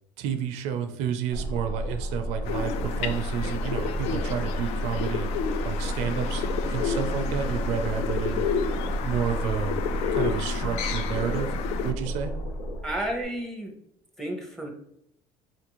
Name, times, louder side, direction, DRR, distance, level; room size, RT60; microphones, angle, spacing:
voice 1, 0.2-5.3 5.6-8.5 9.0-9.8 10.1-11.5 11.8-12.3, right 8 dB, 75° right, 8 dB, 0.4 m, -30 dB
sound 1, 1.3-13.2, right 1 dB, 85° left, 0.8 m, -31 dB
sound 2, 2.5-11.9, left 7 dB, 60° left, 0.4 m, -31 dB
Bowed string instrument, 6.1-9.6, left 4 dB, 40° left, 1.2 m, -44 dB
voice 2, 12.8-13.7 14.2-14.7, right 1 dB, 5° left, 0 dB, 0.8 m, -31 dB
4.0 x 2.5 x 2.9 m, 0.74 s
cardioid pair, 130°, 12 cm